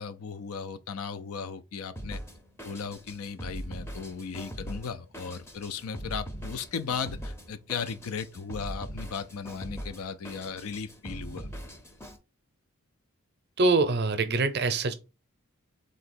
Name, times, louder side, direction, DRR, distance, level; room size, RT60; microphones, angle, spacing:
voice 1, 0.0-2.2 2.6-11.5, left 6 dB, 70° left, 0.4 m, -36 dB
Drum kit, 2.0-12.2, equal, 10° left, 0.6 m, -41 dB
voice 2, 13.6-14.9, right 3 dB, 45° right, 0.6 m, -24 dB
3.8 x 2.8 x 4.1 m
head